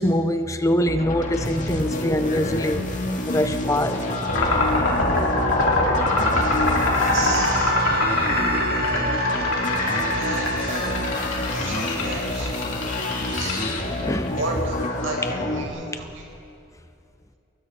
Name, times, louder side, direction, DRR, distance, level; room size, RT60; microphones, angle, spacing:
voice 1, 0.0-2.9 3.3-4.3 14.0-14.4 15.2-15.3, left 1 dB, 15° left, 9 dB, 0.6 m, -23 dB
sound 1, 0.9-15.6, left 1 dB, 40° left, 2.2 m, -28 dB
sound 2, 4.3-14.0, left 2 dB, 75° left, 4.5 m, -23 dB
Wind instrument woodwind instrument, 6.8-11.1, right 1 dB, 50° right, 1.4 m, -29 dB
voice 2, 6.9-7.8 9.8-10.9 11.4-12.5 13.3-13.6 14.3-14.8 15.0-16.3, right 3 dB, 80° right, -1 dB, 5.5 m, -33 dB
29.0 x 22.0 x 4.4 m, 2.6 s
head